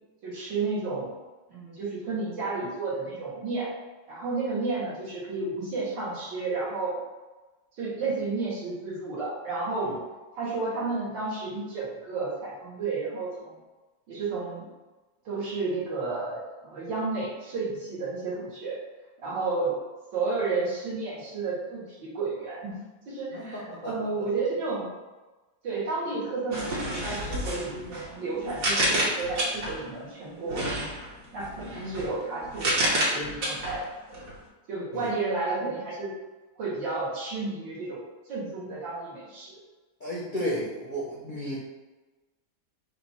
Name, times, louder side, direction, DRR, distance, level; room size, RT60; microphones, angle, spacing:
voice 1, 0.2-1.2 1.5-3.7 4.1-7.0 7.8-9.9 10.4-13.5 14.1-14.6 15.3-18.8 19.2-19.7 20.1-24.9 25.6-30.9 31.3-33.8 34.1-34.2 34.7-36.1 36.6-38.0 38.3-39.6, right 3 dB, 75° right, -7 dB, 2.1 m, -32 dB
voice 2, 23.3-23.9 34.9-35.1 40.0-41.6, equal, 45° left, -7 dB, 0.6 m, -33 dB
sound 1, 26.5-29.9 30.5-34.4, right 1 dB, 50° right, 1.4 m, -30 dB
5.2 x 2.3 x 4.2 m, 1.2 s
omnidirectional pair, 2.1 m